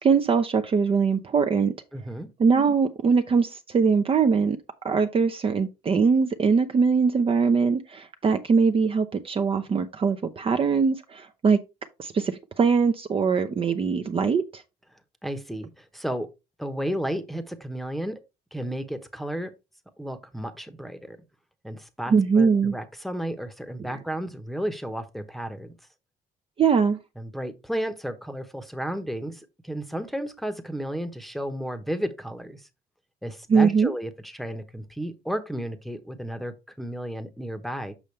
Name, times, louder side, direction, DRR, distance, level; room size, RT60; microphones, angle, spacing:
voice 1, 0.0-1.7 2.4-4.6 4.8-11.6 12.0-14.6 22.1-22.7 26.6-27.0 33.5-33.9, right 5 dB, 35° right, 0.6 m, -22 dB
voice 2, 1.9-2.3 15.2-16.3 16.6-18.2 18.5-19.5 20.0-21.2 21.6-25.7 27.2-32.7 33.2-37.9, equal, ahead, 1.0 m, -33 dB
7.0 x 5.6 x 3.2 m
cardioid pair, 110°, 17 cm